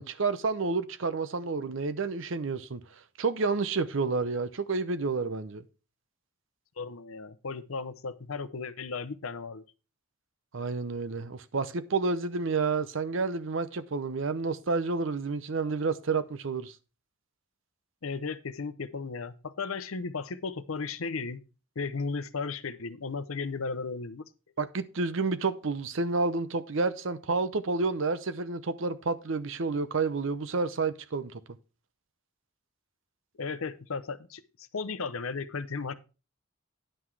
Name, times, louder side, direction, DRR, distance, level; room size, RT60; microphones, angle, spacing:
voice 1, 0.0-2.8 3.2-5.6 10.5-16.8 24.6-31.4, right 4 dB, 60° right, 0.7 m, -30 dB
voice 2, 6.8-9.6 18.0-21.4 21.8-24.2 33.4-34.4 34.7-35.9, left 4 dB, 80° left, 0.7 m, -35 dB
10.0 x 5.8 x 4.7 m
head